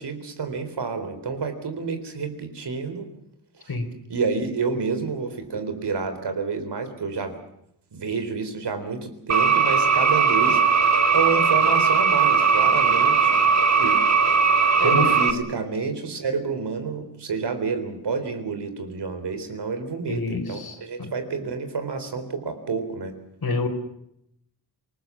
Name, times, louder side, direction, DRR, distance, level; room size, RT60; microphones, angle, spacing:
voice 1, 0.0-3.1 3.6-3.7 4.1-7.4 7.9-13.4 13.8-14.0 14.8-23.2, right 5 dB, 75° right, 8 dB, 3.9 m, -29 dB
sound 1, 9.3-15.3, right 6 dB, 40° right, 1.9 m, -19 dB
voice 2, 14.8-15.1 20.1-21.1 23.4-23.7, left 3 dB, 60° left, 7 dB, 4.1 m, -28 dB
27.5 x 19.5 x 7.3 m, 0.76 s
wide cardioid pair, 115°, 41 cm